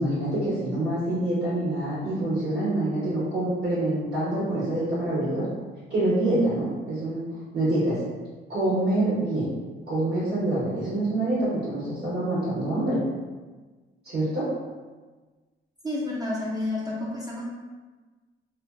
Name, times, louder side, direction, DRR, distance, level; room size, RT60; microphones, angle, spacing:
voice 1, 0.0-5.4 5.9-7.2 7.5-8.0 8.5-9.5 9.9-13.0 14.0-14.4, right 1 dB, 55° right, -10 dB, 1.1 m, -26 dB
voice 2, 15.8-17.4, left 2 dB, 20° right, -5 dB, 0.4 m, -30 dB
2.4 x 2.2 x 2.4 m, 1.3 s
cardioid pair, 90°, 20 cm